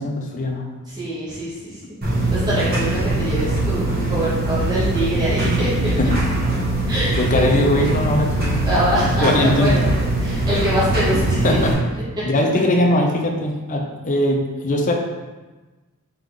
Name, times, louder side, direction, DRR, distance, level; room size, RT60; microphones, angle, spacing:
voice 1, 0.0-0.7 6.0-6.2 7.2-8.7 9.0-9.8 11.4-11.8 12.2-14.9, left 1 dB, 35° left, 2 dB, 0.5 m, -20 dB
voice 2, 0.9-5.9 6.9-7.5 7.7-8.0 8.6-9.9 10.2-11.6, equal, 20° right, -10 dB, 1.0 m, -24 dB
sound 1, 2.0-11.7, right 2 dB, 45° right, 1.0 m, -22 dB
3.5 x 3.4 x 3.8 m, 1.2 s
head